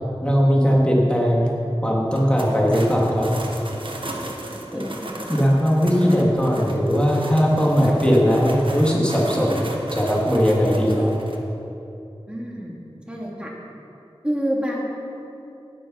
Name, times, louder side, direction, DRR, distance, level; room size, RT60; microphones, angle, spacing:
voice 1, 0.2-1.4 1.8-3.3 4.7-4.8 5.3-11.1, equal, 10° left, -4 dB, 3.0 m, -19 dB
sound 1, 2.1-11.4, right 1 dB, 55° right, 1.4 m, -35 dB
voice 2, 4.7-5.2 12.3-12.8 13.1-13.5 14.2-14.8, equal, 10° right, -3 dB, 2.8 m, -28 dB
18.5 x 6.7 x 5.9 m, 2.8 s
wide cardioid pair, 45°, 10 cm